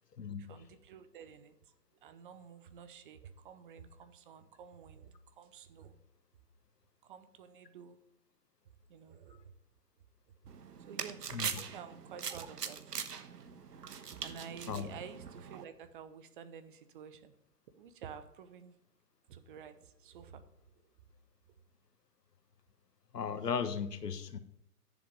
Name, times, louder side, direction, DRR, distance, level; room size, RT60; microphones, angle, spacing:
voice 1, 0.4-1.5 2.0-6.0 7.0-8.0 8.9-9.5 10.4-10.6 10.9-12.8 14.2-17.3 17.7-18.7 19.3-20.4, right 7 dB, 35° right, 11 dB, 0.8 m, -51 dB
sound 1, 10.5-15.6, right 7 dB, 80° right, 1.2 m, -42 dB
voice 2, 23.1-24.4, left 6 dB, 80° left, 10 dB, 1.4 m, -36 dB
11.0 x 7.2 x 5.2 m, 0.79 s
hypercardioid pair, 135°, 48 cm